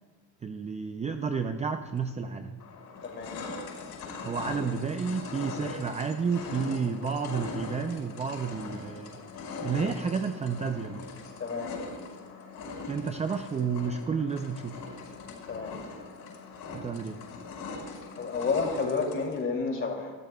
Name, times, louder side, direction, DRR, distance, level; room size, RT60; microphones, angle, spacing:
voice 1, 0.4-2.6 4.2-9.2 9.6-11.0 12.9-14.8 16.7-17.2, right 5 dB, 20° right, 6 dB, 0.4 m, -31 dB
sound 1, 2.0-2.1 2.6-19.4, left 4 dB, 75° left, 5.2 m, -41 dB
voice 2, 3.0-3.3 11.4-11.8 15.5-15.8 18.2-20.1, left 4 dB, 30° left, 1 dB, 2.5 m, -30 dB
25.0 x 13.5 x 2.3 m, 1.4 s
cardioid pair, 155°, 38 cm